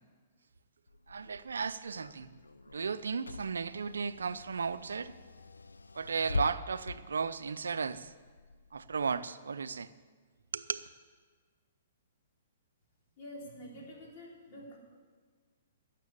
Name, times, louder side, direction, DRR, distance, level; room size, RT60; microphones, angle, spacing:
Car / Engine, 0.9-9.2, left 3 dB, 85° left, 0.5 m, -44 dB
voice 1, 1.1-2.3 2.7-5.1 6.0-8.1 8.7-9.9 10.5-10.8, right 5 dB, 75° right, 14 dB, 0.6 m, -35 dB
voice 2, 13.2-14.8, equal, 40° left, -2 dB, 4.1 m, -47 dB
12.0 x 7.5 x 8.6 m, 1.5 s
figure-of-eight pair, 120°, 0 cm